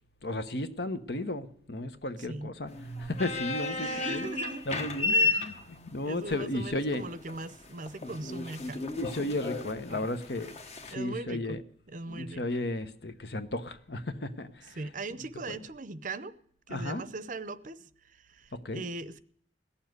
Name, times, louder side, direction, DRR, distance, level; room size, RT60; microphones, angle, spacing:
voice 1, 0.2-2.7 3.0-4.3 4.7-5.5 5.9-7.0 9.0-10.5 10.8-11.6 12.1-14.8 15.5-15.6 16.7-17.0 18.5-18.8, left 1 dB, 60° left, 1.0 m, -34 dB
voice 2, 2.2-2.5 3.8-4.7 5.1-5.5 6.0-8.8 10.9-11.6 11.9-12.4 14.8-16.3 16.7-19.2, right 3 dB, 45° right, 0.7 m, -40 dB
sound 1, 2.7-10.9, left 2 dB, 35° left, 1.2 m, -33 dB
16.5 x 7.2 x 9.5 m
head